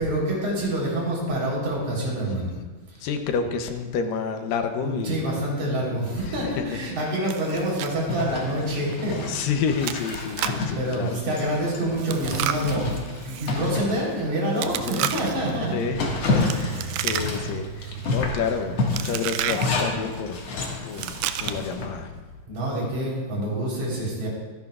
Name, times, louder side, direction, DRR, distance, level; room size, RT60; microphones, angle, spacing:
voice 1, 0.0-2.5 2.9-3.1 4.8-9.2 10.8-15.8 16.4-17.0 22.5-24.3, right 1 dB, 50° right, -4 dB, 5.2 m, -27 dB
voice 2, 3.0-5.5 6.1-6.8 9.3-11.2 14.8-15.1 15.7-16.1 16.5-21.1 21.4-22.2, left 6 dB, 75° left, 6 dB, 2.5 m, -29 dB
Chewing mastication, 7.3-7.9 8.2-8.3 8.8-9.0 9.8-10.7 12.0-13.5 14.6-15.5 16.4-17.6 17.8-18.2 18.9-19.7 20.9-21.7, right 11 dB, 85° right, 1.7 m, -31 dB
Zipper (clothing), 8.1-14.7 15.1-15.2 15.6-21.9, left 3 dB, 50° left, 2.5 m, -30 dB
sound 1, 14.6-19.8, right 4 dB, 25° left, 3.4 m, -39 dB
24.5 x 11.0 x 2.4 m, 1.3 s
omnidirectional pair, 4.2 m